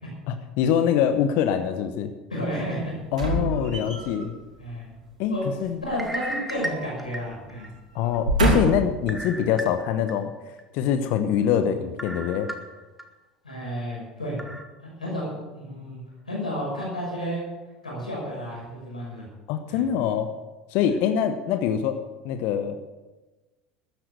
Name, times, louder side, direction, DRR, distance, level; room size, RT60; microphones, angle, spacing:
voice 1, 0.3-2.1 3.1-4.3 5.2-5.8 7.9-10.3 10.7-12.5 19.5-20.3 20.7-22.8, left 8 dB, 55° left, 9 dB, 1.0 m, -24 dB
voice 2, 2.3-3.0 4.6-4.9 5.3-5.4 5.8-7.7 13.4-14.4 14.8-16.0 16.3-17.4 17.8-19.2 19.7-19.8, equal, 85° left, -4 dB, 6.0 m, -31 dB
sound 1, 3.1-4.3 5.8-7.0 7.3-7.5 8.0-9.0 9.6-9.7, right 2 dB, 80° right, 3.1 m, -26 dB
sound 2, 5.9-7.7 8.1-8.2 9.1-10.1 10.6-10.7 12.0-13.0 13.5-13.6 14.4-14.6, right 1 dB, 5° right, 1.9 m, -35 dB
14.0 x 10.5 x 6.8 m, 1.1 s
figure-of-eight pair, 70°, 4 cm